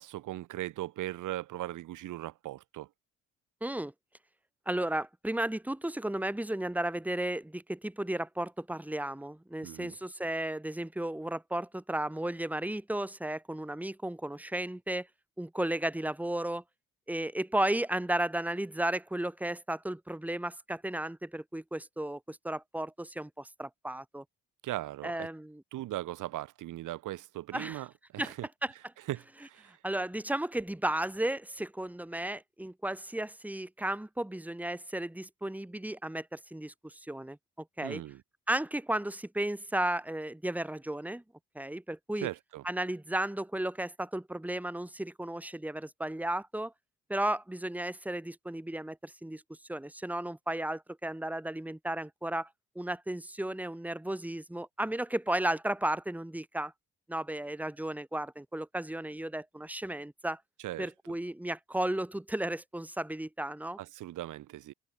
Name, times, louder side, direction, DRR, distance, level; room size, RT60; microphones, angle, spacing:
voice 1, 0.0-2.9 9.6-9.9 24.6-25.3 25.7-27.9 28.1-28.5 29.1-29.8 37.8-38.2 42.2-42.6 60.6-60.9 63.8-64.7, right 15 dB, 85° right, 3.6 m, -38 dB
voice 2, 3.6-3.9 4.7-15.1 15.4-16.6 17.1-24.2 25.0-25.6 27.5-27.8 28.2-28.3 28.6-28.7 29.6-37.4 37.8-38.0 38.5-41.2 41.5-42.3 42.6-46.7 47.1-49.4 49.7-52.5 52.7-56.7 57.1-60.4 60.8-63.8, right 1 dB, 5° right, 2.6 m, -34 dB
cardioid pair, 90°, 30 cm